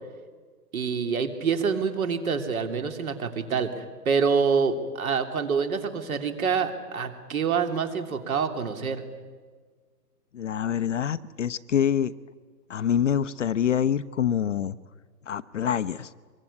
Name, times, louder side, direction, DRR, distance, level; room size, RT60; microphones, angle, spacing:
voice 1, 0.7-9.0, right 5 dB, 55° right, 6 dB, 3.2 m, -26 dB
voice 2, 10.3-12.1 12.7-14.7 15.3-16.1, left 9 dB, 50° left, 12 dB, 0.7 m, -26 dB
24.5 x 22.5 x 9.9 m, 1.5 s
hypercardioid pair, 160°, 49 cm